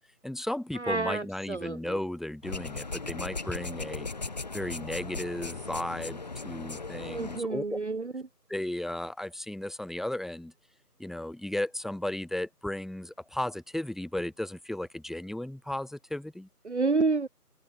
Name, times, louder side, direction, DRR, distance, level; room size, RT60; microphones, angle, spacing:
voice 1, 0.2-4.1 4.5-7.8 8.5-10.5 11.0-16.5, left 1 dB, ahead, 0.5 m, -35 dB
voice 2, 0.7-2.0 7.0-8.2 16.6-17.3, right 3 dB, 45° right, 0.9 m, -29 dB
sound 1, 2.4-7.4, left 3 dB, 25° left, 2.0 m, -37 dB
open air
figure-of-eight pair, 170°, 47 cm